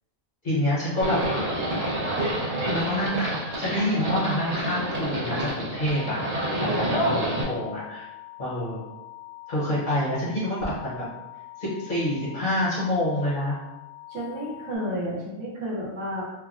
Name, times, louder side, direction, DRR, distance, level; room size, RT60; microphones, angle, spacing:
voice 1, 0.4-1.2 2.6-6.2 6.6-8.1 8.4-8.9 9.5-10.9 11.6-13.5, left 1 dB, 40° left, -9 dB, 0.9 m, -27 dB
Livestock farm animals working animals, 1.0-7.4, right 1 dB, 45° right, 0.5 m, -28 dB
sound 1, 5.9-14.8, left 18 dB, 70° left, 1.0 m, -44 dB
voice 2, 14.1-16.2, equal, 65° right, -5 dB, 1.1 m, -31 dB
3.3 x 2.1 x 2.4 m, 1.0 s
omnidirectional pair, 1.4 m